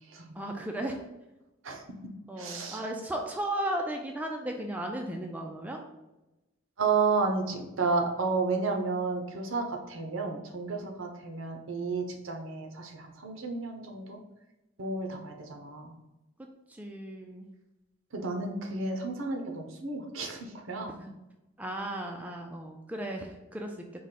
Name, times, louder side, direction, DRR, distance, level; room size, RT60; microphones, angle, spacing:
voice 1, 0.3-1.0 2.3-5.8 16.7-17.5 21.0-21.1 21.6-23.9, right 1 dB, 10° right, 1 dB, 0.3 m, -35 dB
voice 2, 2.4-2.8 6.8-14.2 14.8-15.9 18.1-20.9, right 4 dB, 70° right, 3 dB, 0.7 m, -32 dB
4.8 x 2.2 x 4.1 m, 0.98 s
head